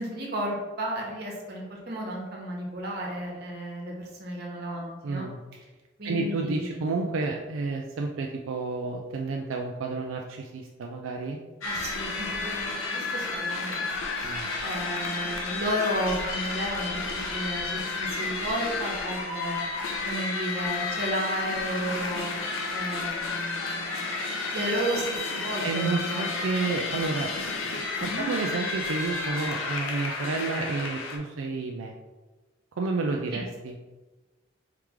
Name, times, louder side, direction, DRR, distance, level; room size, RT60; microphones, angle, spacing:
voice 1, 0.0-5.3 6.0-6.8 11.6-13.8 14.2-14.3 14.6-19.6 20.0-22.3 22.7-24.2 24.4-26.7 28.0-28.3 33.3-33.4, equal, 50° right, -2 dB, 1.1 m, -33 dB
voice 2, 5.0-5.4 6.0-11.4 14.2-14.5 25.6-27.3 27.6-27.8 28.2-31.9 32.7-33.8, right 3 dB, 85° right, 1 dB, 0.4 m, -30 dB
sound 1, 11.6-31.2, left 3 dB, 90° left, 0.8 m, -32 dB
4.6 x 3.1 x 3.6 m, 1.2 s
head